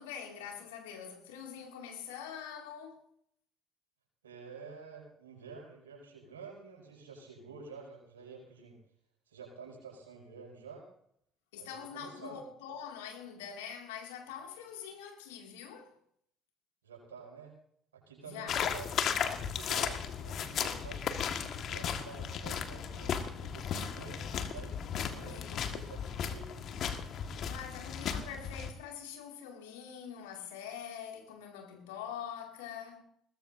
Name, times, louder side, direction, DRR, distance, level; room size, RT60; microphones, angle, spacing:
voice 1, 0.0-3.1 11.5-16.0 18.2-18.7 25.2-25.8 27.4-33.0, left 8 dB, 75° left, 2.4 m, -44 dB
voice 2, 4.2-8.8 9.3-10.9 11.6-12.4 16.8-17.5 17.9-21.0 21.6-24.8 25.0-26.5, right 5 dB, 80° right, 6.4 m, -49 dB
sound 1, 18.5-28.7, left 7 dB, 55° left, 1.7 m, -35 dB
21.0 x 20.0 x 2.7 m
figure-of-eight pair, 50°, 0 cm